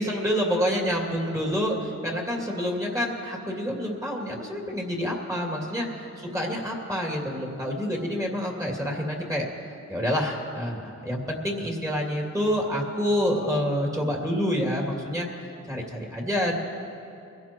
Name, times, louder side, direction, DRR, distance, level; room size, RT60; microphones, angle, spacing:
voice 1, 0.0-5.9 6.2-9.5 9.9-15.3 15.7-16.6, equal, 10° right, -1 dB, 2.5 m, -27 dB
24.0 x 15.5 x 3.0 m, 2.5 s
wide cardioid pair, 85°, 30 cm